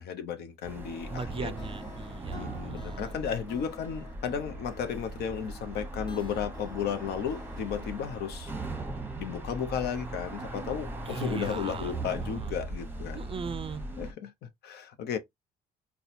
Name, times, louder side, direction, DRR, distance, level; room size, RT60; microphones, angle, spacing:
voice 1, 0.0-1.5 2.3-8.5 9.2-13.3 14.0-15.2, left 8 dB, 80° left, 0.7 m, -34 dB
sound 1, 0.6-8.2, left 4 dB, 30° left, 0.8 m, -51 dB
sound 2, 0.6-14.1, right 2 dB, 10° right, 0.9 m, -39 dB
voice 2, 1.1-3.1 11.1-12.5 13.1-13.8, right 5 dB, 35° right, 0.4 m, -38 dB
4.0 x 2.3 x 2.6 m
cardioid pair, 85°, 17 cm